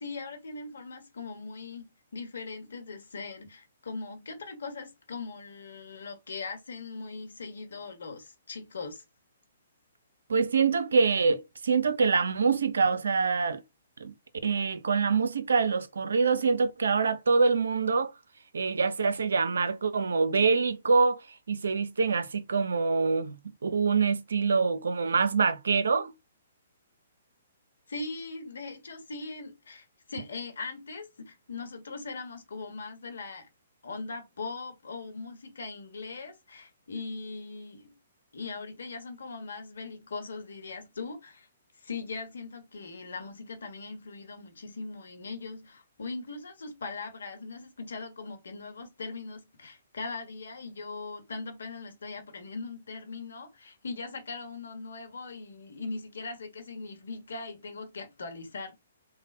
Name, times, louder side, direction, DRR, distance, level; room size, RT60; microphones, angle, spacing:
voice 1, 0.0-1.9 2.1-9.0 27.9-33.5 33.8-37.9 38.3-41.5 41.8-58.8, left 3 dB, 65° left, 1.0 m, -40 dB
voice 2, 10.3-13.6 14.0-14.1 14.4-18.1 18.5-23.4 23.6-26.1, right 4 dB, 65° right, 0.5 m, -25 dB
3.2 x 2.1 x 2.6 m
figure-of-eight pair, 125°, 0 cm